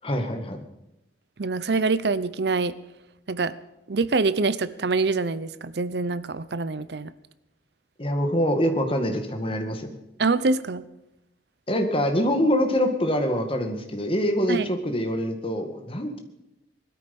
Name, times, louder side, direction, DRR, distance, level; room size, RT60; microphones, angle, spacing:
voice 1, 0.0-0.6 8.0-10.0 11.7-16.2, equal, 30° left, 5 dB, 1.9 m, -25 dB
voice 2, 1.4-2.8 3.3-3.5 3.9-7.1 10.2-10.8 14.5-14.7, right 3 dB, 65° right, 16 dB, 0.7 m, -25 dB
20.0 x 13.0 x 5.4 m, 0.89 s
head